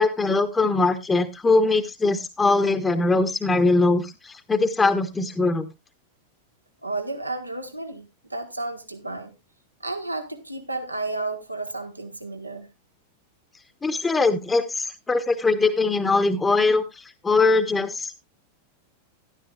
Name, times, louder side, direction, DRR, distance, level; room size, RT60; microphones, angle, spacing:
voice 1, 0.0-5.7 13.8-18.2, left 3 dB, 15° left, 1.0 m, -21 dB
voice 2, 6.8-9.3 9.8-12.7, right 2 dB, 85° right, 1.3 m, -32 dB
12.5 x 11.5 x 2.4 m
figure-of-eight pair, 90°, 0 cm